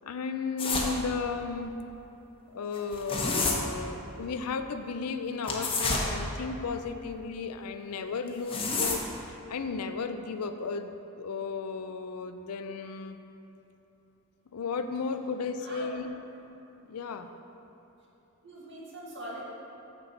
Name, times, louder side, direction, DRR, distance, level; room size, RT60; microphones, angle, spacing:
voice 1, 0.0-1.8 2.5-9.0 9.3-13.2 14.5-16.1 16.8-17.3, left 4 dB, 90° left, 8 dB, 0.5 m, -34 dB
sound 1, 0.6-0.9 2.8-3.5 5.4-6.1 8.3-9.1, left 3 dB, 25° left, 0.9 m, -28 dB
voice 2, 18.4-19.4, equal, 55° right, -5 dB, 1.8 m, -42 dB
7.2 x 6.8 x 5.2 m, 2.9 s
head